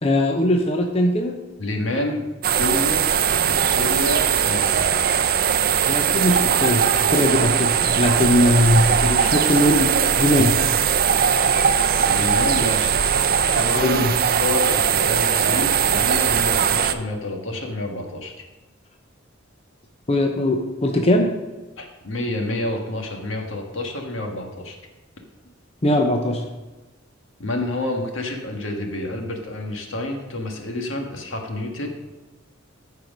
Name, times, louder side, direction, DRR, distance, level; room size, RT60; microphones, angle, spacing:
voice 1, 0.0-1.4 5.9-8.9 9.3-10.5 13.7-14.1 20.1-21.3 25.8-26.4, left 1 dB, 30° left, 2 dB, 0.7 m, -20 dB
voice 2, 1.6-2.2 2.5-3.1 3.3-4.9 8.9-9.6 12.0-18.3 21.8-24.8 27.4-31.9, left 1 dB, 70° left, 3 dB, 1.6 m, -28 dB
sound 1, 2.4-16.9, right 8 dB, 45° right, 0.5 m, -20 dB
14.0 x 4.7 x 5.3 m, 1.2 s
head